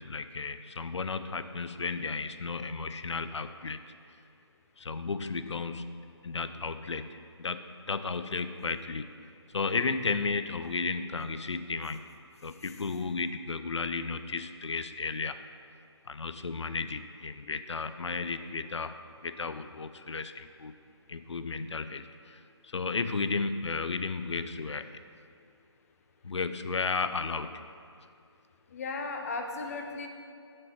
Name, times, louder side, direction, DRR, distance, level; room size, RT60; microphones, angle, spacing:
voice 1, 0.0-3.8 4.8-9.1 9.5-12.0 12.4-15.4 16.1-20.7 21.1-25.0 26.2-27.5, left 4 dB, 75° left, 10 dB, 0.5 m, -34 dB
voice 2, 28.7-30.1, left 3 dB, 30° left, 4 dB, 0.7 m, -36 dB
7.4 x 6.2 x 6.0 m, 2.4 s
figure-of-eight pair, 150°, 15 cm